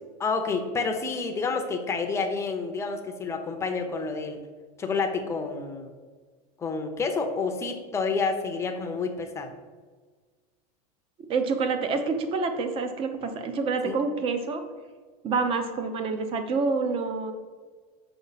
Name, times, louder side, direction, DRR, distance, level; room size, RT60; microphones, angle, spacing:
voice 1, 0.2-4.4 4.8-5.9 6.6-9.5 13.8-14.0, left 4 dB, 15° left, 4 dB, 0.7 m, -29 dB
voice 2, 11.3-14.6 15.2-17.3, right 4 dB, 30° right, 7 dB, 0.7 m, -27 dB
6.8 x 5.6 x 4.1 m, 1.4 s
supercardioid pair, 155°, 20 cm